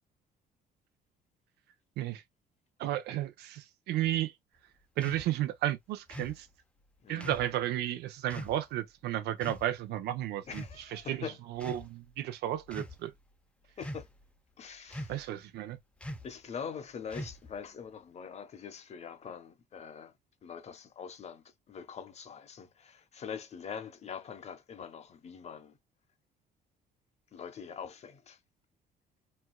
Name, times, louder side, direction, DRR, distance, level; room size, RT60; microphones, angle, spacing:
voice 1, 2.8-4.3 5.0-6.5 7.1-13.1 15.1-15.8, right 13 dB, 75° right, 0.6 m, -33 dB
sound 1, 5.0-5.3 6.1-6.4 7.2-7.5 8.3-8.6 9.4-9.7 10.5-11.0 11.6-11.9 12.6-13.0 13.8-14.2 14.9-15.3 16.0-16.3 17.1-17.6, equal, 5° left, 0.5 m, -42 dB
voice 2, 7.0-7.4 10.4-11.4 13.8-14.0 14.6-15.2 16.2-20.1 20.4-25.8 27.3-28.4, left 7 dB, 40° left, 0.8 m, -43 dB
4.3 x 2.3 x 2.2 m
cardioid pair, 110°, 17 cm